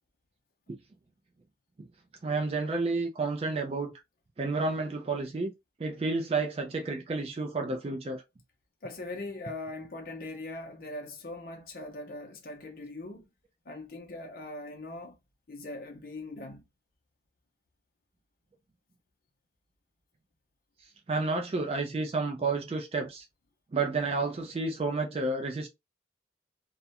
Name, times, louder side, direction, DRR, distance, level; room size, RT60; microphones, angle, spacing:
voice 1, 2.2-3.9 4.4-5.5 5.8-8.2 21.1-23.2 23.7-25.7, right 3 dB, 35° right, 0.3 m, -30 dB
voice 2, 8.8-13.3 13.7-15.2 15.5-16.6, left 2 dB, 50° left, 0.5 m, -41 dB
2.3 x 2.0 x 2.7 m
head